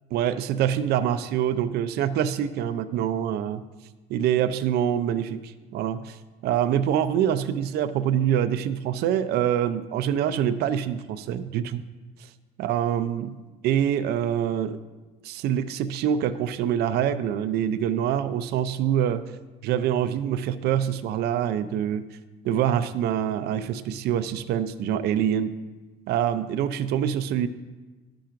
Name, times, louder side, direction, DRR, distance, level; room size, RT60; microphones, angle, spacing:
voice 1, 0.1-3.7 4.1-6.2 6.4-11.8 12.6-14.8 15.2-19.3 19.6-22.1 22.4-25.6 26.1-27.5, right 9 dB, 75° right, 11 dB, 0.4 m, -25 dB
13.0 x 5.7 x 2.5 m, 1.2 s
cardioid pair, 110°, 17 cm